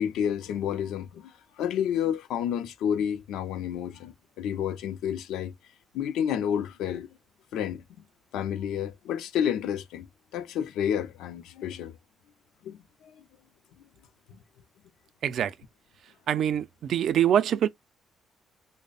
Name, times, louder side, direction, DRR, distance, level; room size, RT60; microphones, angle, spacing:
voice 1, 0.0-1.3 1.6-5.5 5.9-7.1 7.5-8.0 8.3-10.1 10.3-11.9 12.6-13.2 14.3-14.4, left 9 dB, 90° left, 0.5 m, -30 dB
voice 2, 15.2-15.5 16.3-17.7, right 10 dB, 70° right, 0.4 m, -24 dB
3.3 x 2.1 x 3.9 m
cardioid pair, 90°, 0 cm